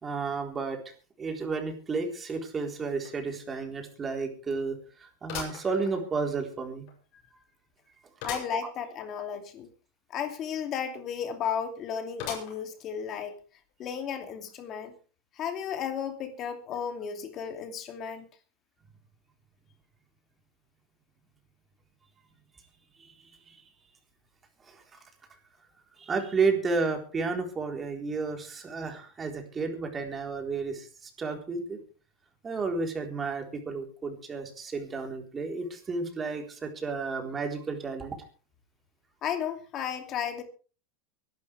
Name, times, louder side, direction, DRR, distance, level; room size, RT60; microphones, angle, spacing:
voice 1, 0.0-6.9 23.0-23.6 24.7-25.0 26.0-31.8 32.4-38.2, right 4 dB, 20° right, 3.9 m, -32 dB
sound 1, 3.0-3.1 3.6-3.7 5.3-6.4 6.9-7.0 8.2-8.6 9.0-9.1 9.3-9.4 12.2-12.8 13.4-13.5 14.5-14.6, left 7 dB, 50° left, 7.5 m, -39 dB
voice 2, 8.2-9.7 10.1-13.4 13.8-14.9 15.3-18.3 39.2-40.4, left 8 dB, 35° left, 2.7 m, -34 dB
24.0 x 12.0 x 3.4 m
supercardioid pair, 145°, 0 cm